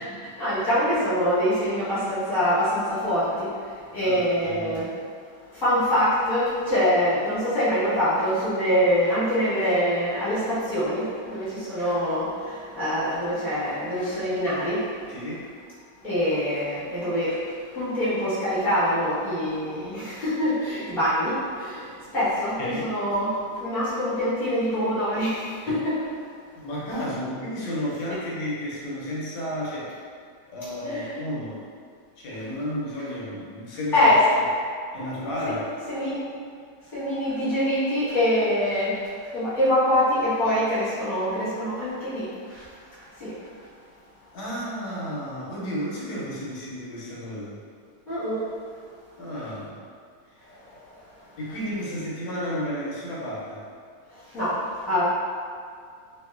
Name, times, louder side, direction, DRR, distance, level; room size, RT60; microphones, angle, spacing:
voice 1, 0.2-15.1 15.9-26.0 30.8-31.2 33.9-34.2 35.5-35.6 35.9-36.2 36.9-43.7 44.3-44.4 48.1-48.4 50.5-51.3 54.1-55.0, equal, ahead, -14 dB, 0.7 m, -25 dB
voice 2, 4.0-4.8 15.1-15.5 22.6-22.9 25.7-25.8 26.6-29.9 30.5-31.6 32.2-34.1 34.9-35.7 44.3-47.6 49.2-49.8 50.2-50.5 51.4-53.6, equal, 80° left, -6 dB, 1.2 m, -32 dB
2.9 x 2.0 x 2.3 m, 2.1 s
omnidirectional pair, 1.8 m